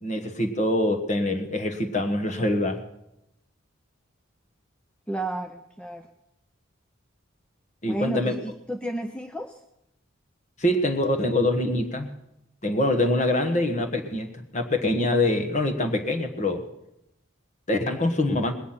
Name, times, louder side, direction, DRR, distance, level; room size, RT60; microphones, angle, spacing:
voice 1, 0.0-2.8 7.8-8.3 10.6-12.1 12.6-16.6 17.7-18.5, left 1 dB, 35° left, 6 dB, 1.4 m, -24 dB
voice 2, 5.1-6.1 7.8-9.6, right 1 dB, 5° left, 5 dB, 0.5 m, -32 dB
20.5 x 9.5 x 5.8 m, 0.85 s
head